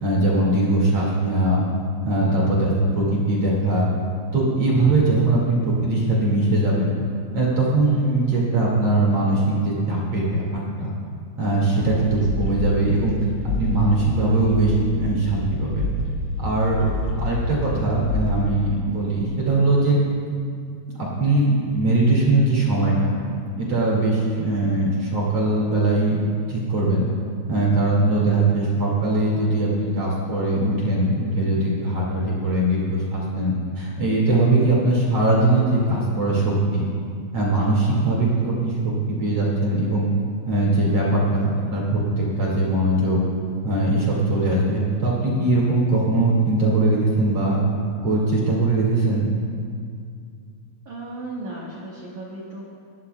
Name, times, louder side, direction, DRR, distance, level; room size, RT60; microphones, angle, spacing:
voice 1, 0.0-1.6 2.0-3.9 4.3-6.9 7.3-10.9 11.4-13.2 13.6-15.9 16.4-20.0 21.0-23.2 23.6-26.2 26.5-27.1 27.5-36.9 37.3-40.1 40.5-43.2 43.6-47.6 48.0-49.3, right 2 dB, 50° right, -5 dB, 1.9 m, -21 dB
sound 1, 11.8-18.6, left 2 dB, 55° left, 3.0 m, -28 dB
voice 2, 50.8-52.7, right 2 dB, 90° right, -5 dB, 1.7 m, -36 dB
27.5 x 11.5 x 2.3 m, 2.3 s
omnidirectional pair, 5.9 m